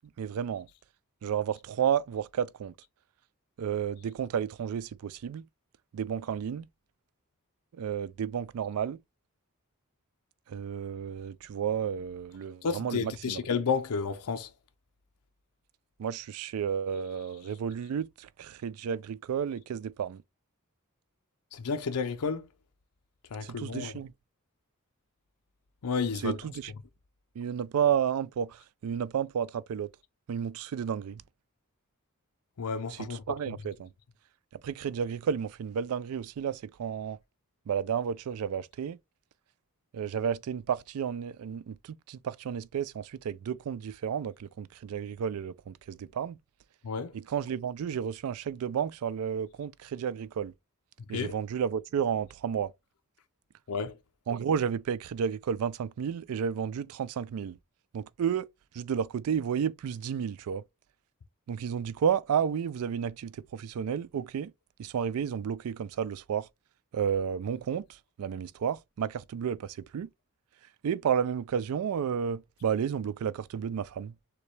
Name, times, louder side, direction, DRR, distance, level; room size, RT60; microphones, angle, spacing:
voice 1, 0.2-0.7 1.2-2.7 3.6-5.4 5.9-6.7 7.8-9.0 10.5-13.4 16.0-20.2 23.4-24.1 26.2-26.7 27.4-29.9 30.3-31.2 32.9-33.9 34.6-37.2 37.7-39.0 39.9-46.4 47.1-50.5 51.1-52.7 54.3-57.6 57.9-58.5 58.7-60.6 61.5-64.5 64.8-66.5 66.9-70.1 70.8-74.1, right 8 dB, 70° right, 0.3 m, -32 dB
voice 2, 12.6-14.5 21.5-22.5 23.3-23.9 25.8-26.4 32.6-33.4 46.8-47.2 51.1-51.3 53.7-54.0, left 5 dB, 80° left, 0.6 m, -31 dB
6.6 x 2.3 x 3.2 m
head